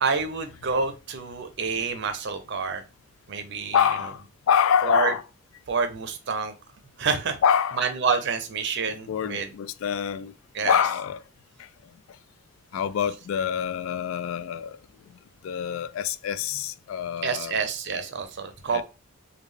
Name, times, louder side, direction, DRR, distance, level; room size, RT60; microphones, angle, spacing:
voice 1, 0.0-2.8 3.3-3.8 4.8-5.1 5.7-6.5 7.0-7.4 7.8-9.5 10.5-10.8 17.2-18.8, right 5 dB, 55° right, 0.6 m, -28 dB
voice 2, 3.7-4.2 4.5-5.2 7.4-7.9 9.1-10.3 10.6-11.2 12.7-14.8 15.4-17.6 18.7-18.8, left 8 dB, 75° left, 0.3 m, -25 dB
3.3 x 2.3 x 3.5 m
head